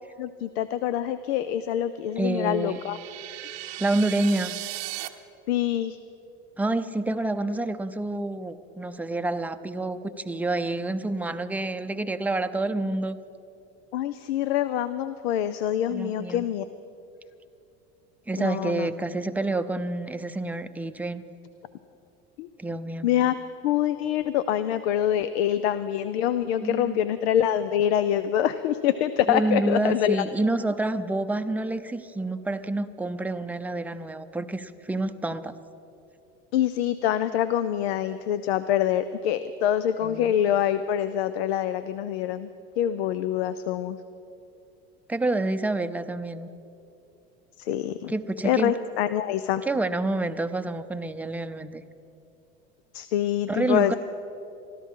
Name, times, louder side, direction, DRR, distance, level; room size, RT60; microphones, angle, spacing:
voice 1, 0.2-3.0 5.5-6.0 13.9-16.6 18.4-18.9 22.4-22.5 23.0-23.3 23.6-30.2 36.5-42.5 42.8-44.0 47.6-48.1 48.4-49.6 52.9-54.0, left 10 dB, 85° left, 13 dB, 0.5 m, -25 dB
voice 2, 2.2-2.8 3.8-4.6 6.6-13.2 15.9-16.4 18.3-21.2 22.6-23.1 26.6-27.0 29.3-35.6 40.0-40.3 45.1-46.5 48.1-48.7 49.7-51.8 53.5-54.0, right 2 dB, 5° right, 9 dB, 0.6 m, -28 dB
sound 1, 2.3-5.1, right 16 dB, 80° right, 0.9 m, -37 dB
24.5 x 13.0 x 3.7 m, 2.7 s
supercardioid pair, 100°, 31 cm